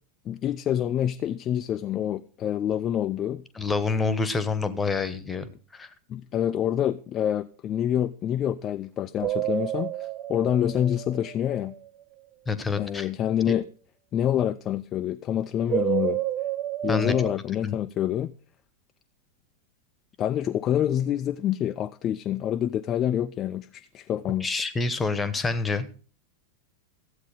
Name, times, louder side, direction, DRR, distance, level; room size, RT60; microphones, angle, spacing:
voice 1, 0.3-3.4 6.1-11.7 12.8-13.7 14.1-16.2 16.8-18.3 20.2-24.5, left 10 dB, 30° left, 0.5 m, -27 dB
voice 2, 3.5-5.5 5.7-5.9 12.5-13.1 13.5-13.6 16.9-17.1 17.6-17.8 24.4-25.9, left 4 dB, 15° left, 1.1 m, -27 dB
sound 1, 9.2-11.6 15.7-17.3, right 12 dB, 30° right, 0.8 m, -29 dB
14.0 x 8.3 x 4.9 m
figure-of-eight pair, 90°, 0 cm